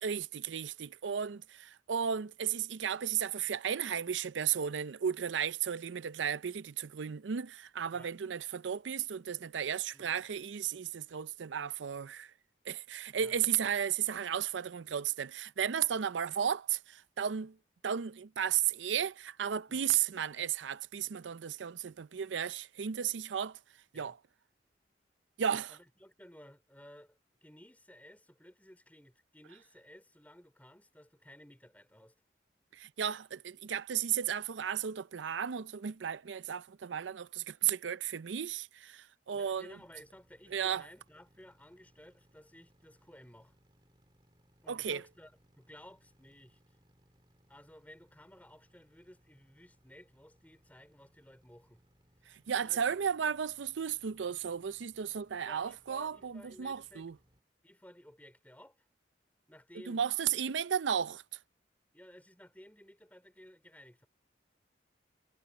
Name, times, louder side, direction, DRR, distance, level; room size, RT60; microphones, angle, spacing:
voice 1, 0.0-12.3 12.7-17.6 17.8-23.6 23.9-24.1 25.4-25.8 32.7-39.6 40.5-40.8 44.7-45.0 52.5-57.1 59.9-61.2, right 8 dB, 90° right, 0.5 m, -34 dB
voice 2, 9.9-10.3 13.2-13.4 19.7-19.9 23.9-24.2 25.7-32.1 39.3-43.5 44.6-46.8 47.5-51.8 52.2-53.0 55.4-57.1 57.6-58.9 59.5-60.0 61.9-64.1, equal, 10° left, 4.7 m, -56 dB
sound 1, 39.7-57.4, equal, 25° right, 2.3 m, -69 dB
head